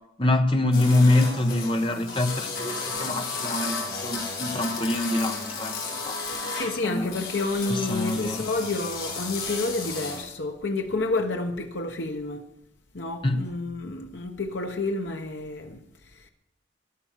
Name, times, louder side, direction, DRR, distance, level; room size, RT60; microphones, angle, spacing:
voice 1, 0.2-6.2 6.8-7.1 7.7-8.4 13.2-13.4, left 2 dB, 25° left, 1.1 m, -25 dB
sound 1, 0.7-10.3, left 4 dB, 50° left, 4.4 m, -33 dB
voice 2, 6.5-12.4 12.9-16.3, left 2 dB, 65° left, 1.1 m, -30 dB
13.0 x 12.0 x 7.4 m
head